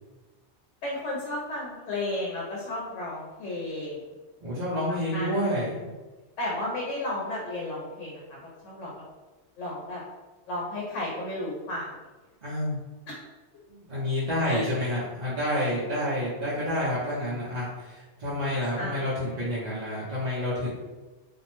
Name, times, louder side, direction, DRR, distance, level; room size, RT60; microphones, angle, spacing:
voice 1, 0.8-4.1 5.1-5.6 6.4-8.2 8.6-8.9 9.6-10.0 10.5-11.9 13.1-13.2 14.3-14.7 18.8-19.5, left 1 dB, 80° left, -4 dB, 1.0 m, -33 dB
voice 2, 4.4-5.8 12.4-12.8 13.7-20.7, left 1 dB, 45° right, -9 dB, 0.6 m, -29 dB
2.5 x 2.0 x 2.9 m, 1.2 s
omnidirectional pair, 1.2 m